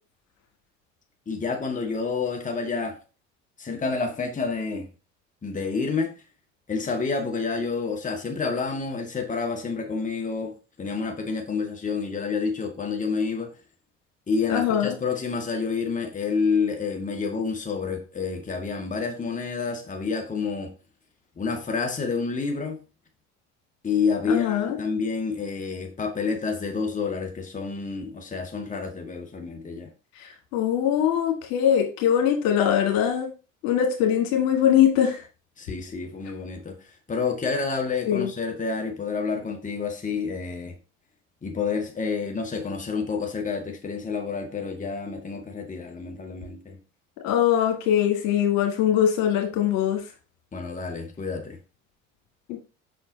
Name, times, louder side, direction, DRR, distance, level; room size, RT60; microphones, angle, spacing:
voice 1, 1.3-3.0 3.6-4.9 5.4-6.1 6.7-13.5 14.3-20.7 21.4-22.8 23.8-29.9 35.6-36.8 37.1-40.7 41.4-46.8 50.5-51.6, left 5 dB, 20° left, 1.2 m, -29 dB
voice 2, 14.5-15.0 24.3-24.8 30.5-33.3 33.6-35.2 38.1-38.3 47.2-50.0, left 9 dB, 65° left, 1.7 m, -22 dB
5.6 x 4.4 x 3.8 m
hypercardioid pair, 60°, 37 cm